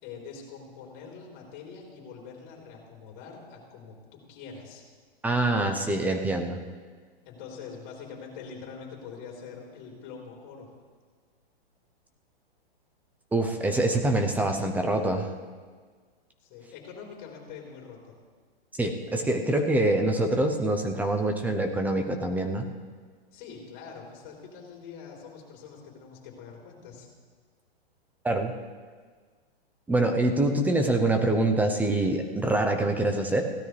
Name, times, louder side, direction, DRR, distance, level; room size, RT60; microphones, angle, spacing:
voice 1, 0.0-4.8 7.2-10.7 16.4-18.1 23.3-27.1, left 5 dB, 35° left, -1 dB, 4.0 m, -44 dB
voice 2, 5.2-6.6 13.3-15.3 18.8-22.7 28.2-28.5 29.9-33.5, right 2 dB, 5° right, 5 dB, 0.8 m, -25 dB
16.5 x 12.5 x 3.4 m, 1.5 s
hypercardioid pair, 140°, 31 cm